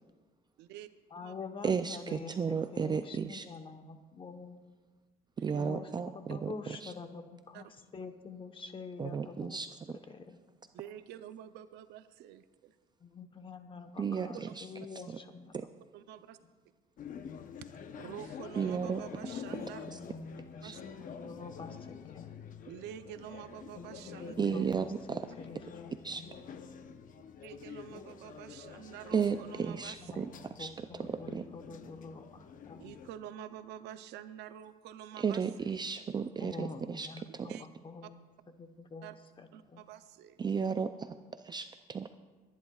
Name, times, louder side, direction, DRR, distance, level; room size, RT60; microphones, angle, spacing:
voice 1, 0.6-0.9 1.2-1.3 5.5-6.0 7.5-7.6 10.7-12.8 14.3-14.5 15.9-16.4 17.6-17.7 17.9-19.8 20.6-20.8 22.6-24.4 27.4-30.3 32.8-35.8 37.5-37.7 38.0-38.1 39.0-39.2 39.5-40.4, right 10 dB, 85° right, 11 dB, 0.6 m, -48 dB
voice 2, 1.1-4.6 5.5-9.6 10.1-10.4 13.0-15.5 19.8-20.7 21.0-22.3 23.7-26.3 30.0-30.3 30.6-32.4 32.7-32.8 36.4-38.2 38.6-39.1 39.4-39.8, left 4 dB, 30° left, 7 dB, 1.0 m, -46 dB
voice 3, 1.6-3.5 5.4-6.9 9.0-10.0 14.0-14.7 14.9-15.2 15.5-15.7 18.6-19.0 19.9-20.0 20.6-20.8 24.4-25.3 26.0-26.2 29.1-30.3 30.6-31.5 35.2-37.6 40.4-42.1, right 6 dB, 25° right, 10 dB, 0.4 m, -34 dB
sound 1, 17.0-33.1, left 7 dB, 50° left, 0.8 m, -48 dB
27.0 x 10.5 x 2.4 m, 1.3 s
cardioid pair, 110°, 17 cm